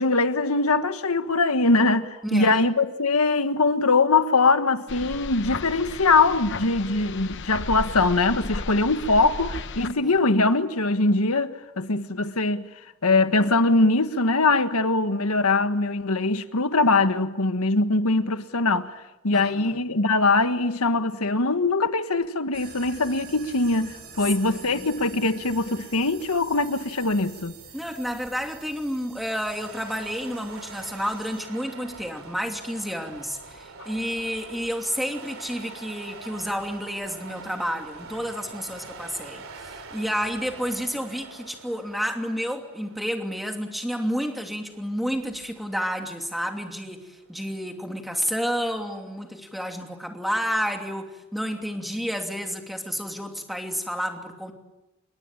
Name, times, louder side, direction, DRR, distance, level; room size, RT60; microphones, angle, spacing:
voice 1, 0.0-12.7 13.0-18.9 19.2-27.6, left 3 dB, 80° left, 1.6 m, -22 dB
voice 2, 2.2-2.6 10.0-10.1 19.3-19.8 24.4-24.9 27.7-54.5, equal, ahead, 2.8 m, -30 dB
sound 1, 4.9-9.9, left 3 dB, 55° left, 0.9 m, -35 dB
sound 2, 22.5-31.5, right 5 dB, 45° right, 6.8 m, -46 dB
sound 3, 29.5-49.1, right 3 dB, 70° right, 3.0 m, -45 dB
28.0 x 23.0 x 8.9 m
head